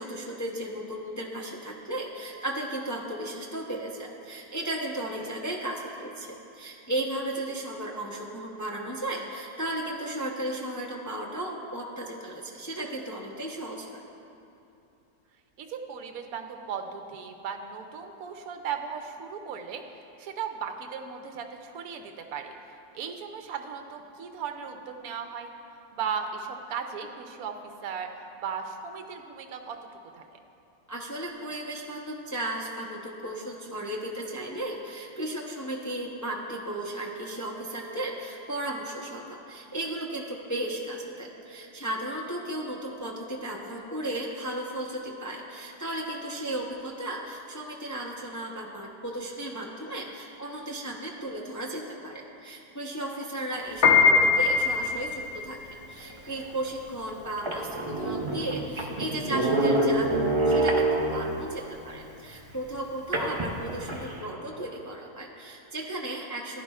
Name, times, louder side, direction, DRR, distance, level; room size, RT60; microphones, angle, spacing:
voice 1, 0.0-14.0 30.9-66.6, right 1 dB, 25° left, -2 dB, 0.4 m, -35 dB
voice 2, 15.6-19.8 20.2-22.5 22.9-25.5 25.9-27.6 27.8-28.1 28.4-29.8 30.1-30.2, right 7 dB, 70° right, 5 dB, 1.1 m, -36 dB
Piano, 53.7-64.1, left 5 dB, 65° left, 1.4 m, -25 dB
sound 1, 56.4-56.5 57.1-57.2 57.4-61.4 63.1-64.2, right 2 dB, 40° right, 0.4 m, -26 dB
15.0 x 10.0 x 2.4 m, 2.7 s
omnidirectional pair, 1.7 m